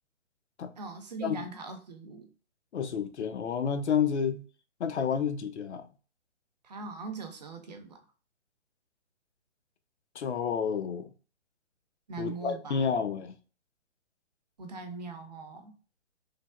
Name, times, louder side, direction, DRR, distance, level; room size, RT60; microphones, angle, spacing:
voice 1, 0.8-2.3 6.6-8.0 12.1-12.9 14.6-15.7, right 4 dB, 35° right, 0.4 m, -41 dB
voice 2, 2.7-4.4 4.8-5.8 10.2-11.1 12.2-13.4, left 7 dB, 70° left, 0.5 m, -30 dB
3.3 x 2.0 x 2.3 m
figure-of-eight pair, 135°, 36 cm